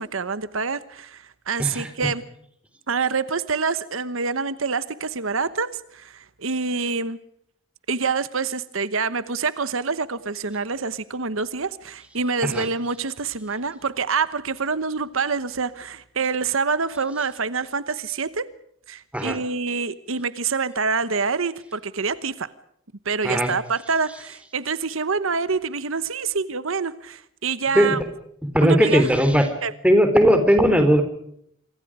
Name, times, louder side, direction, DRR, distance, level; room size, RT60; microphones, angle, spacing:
voice 1, 0.0-2.2 2.9-7.2 7.9-18.5 18.9-22.5 23.0-28.0 28.6-29.1 29.6-29.7, right 5 dB, 75° right, 15 dB, 1.1 m, -26 dB
voice 2, 1.6-1.9 12.4-12.7 19.1-19.4 23.2-23.5 27.7-28.0 28.5-29.5 29.8-31.0, equal, 5° right, 8 dB, 3.8 m, -18 dB
27.0 x 24.0 x 5.0 m, 0.70 s
head